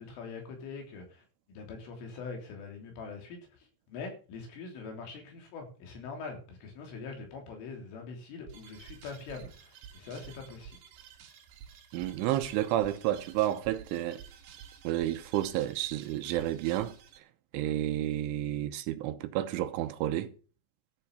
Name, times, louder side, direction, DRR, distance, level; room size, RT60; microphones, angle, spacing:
voice 1, 0.0-10.8, left 4 dB, 75° left, 5.9 m, -43 dB
sound 1, 8.5-17.2, right 8 dB, 65° right, 3.6 m, -51 dB
voice 2, 11.9-14.2 14.8-17.0 17.5-20.3, right 13 dB, 80° right, 3.3 m, -30 dB
13.5 x 7.2 x 7.0 m
omnidirectional pair, 5.7 m